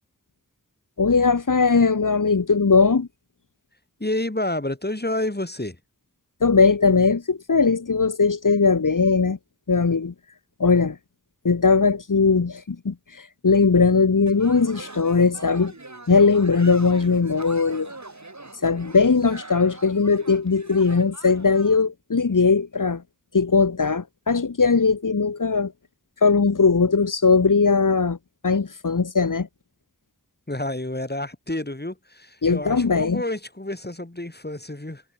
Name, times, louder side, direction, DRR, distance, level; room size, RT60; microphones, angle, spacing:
voice 1, 1.0-3.1 6.4-9.4 9.7-10.1 10.6-11.0 11.4-12.9 13.4-15.7 16.1-17.9 18.6-23.0 23.3-25.7 26.2-28.2 28.4-29.5 32.4-33.2, left 4 dB, 75° left, 1.2 m, -19 dB
voice 2, 4.0-5.8 30.5-35.0, left 1 dB, 30° left, 4.6 m, -29 dB
sound 1, 14.3-21.8, right 2 dB, 60° right, 4.0 m, -42 dB
wide cardioid pair, 40°, 32 cm